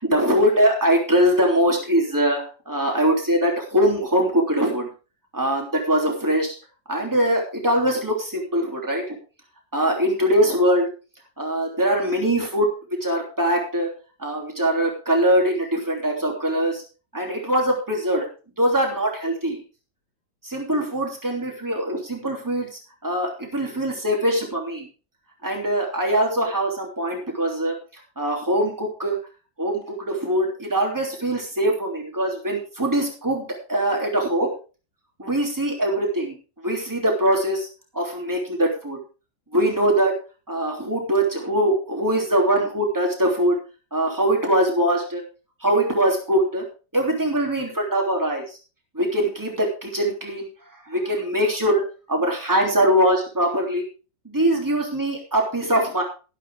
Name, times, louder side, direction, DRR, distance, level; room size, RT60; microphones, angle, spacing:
voice 1, 0.0-4.9 5.3-6.5 6.9-9.2 9.7-10.9 11.4-12.7 13.0-13.9 14.2-16.8 17.1-18.3 18.6-19.6 20.4-24.9 25.4-27.8 28.2-29.2 29.6-34.5 35.2-36.4 36.6-37.7 37.9-39.0 39.5-40.2 40.5-43.6 43.9-45.2 45.6-46.6 46.9-48.4 48.9-50.5 50.9-51.8 52.1-53.8 54.2-56.0, right 1 dB, 10° right, 1 dB, 3.1 m, -22 dB
13.0 x 11.5 x 3.6 m, 0.34 s
omnidirectional pair, 2.0 m